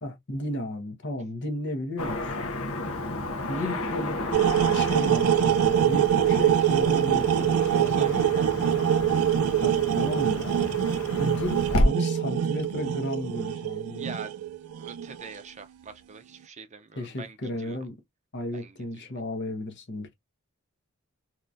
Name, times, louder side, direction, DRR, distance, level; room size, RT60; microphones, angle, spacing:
voice 1, 0.0-2.6 3.5-4.2 4.7-8.3 9.6-10.8 11.2-14.0 16.9-17.9 18.3-20.1, left 1 dB, 55° left, 1.1 m, -34 dB
Car passing by / Traffic noise roadway noise, 2.0-11.9, left 1 dB, 75° left, 1.0 m, -32 dB
sound 1, 4.3-15.3, right 9 dB, 80° right, 0.4 m, -24 dB
voice 2, 7.7-8.9 14.0-17.8 18.5-19.1, right 5 dB, 35° right, 0.6 m, -44 dB
3.7 x 3.0 x 2.5 m
head